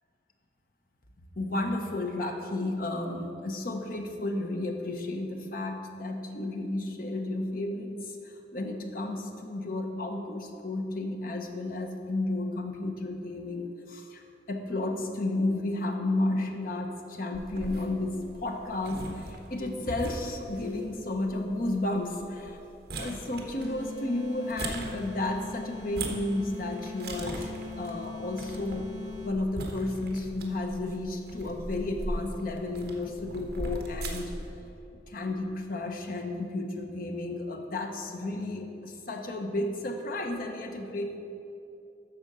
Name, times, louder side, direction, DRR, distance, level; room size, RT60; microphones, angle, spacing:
voice 1, 1.4-22.6 22.9-34.3 34.6-34.7 35.1-41.2, left 2 dB, 50° left, 4 dB, 0.9 m, -32 dB
sound 1, 17.3-34.5, right 1 dB, 60° right, 1.3 m, -41 dB
sound 2, 23.6-29.6, left 5 dB, 75° left, 1.2 m, -41 dB
12.5 x 4.4 x 6.8 m, 2.8 s
head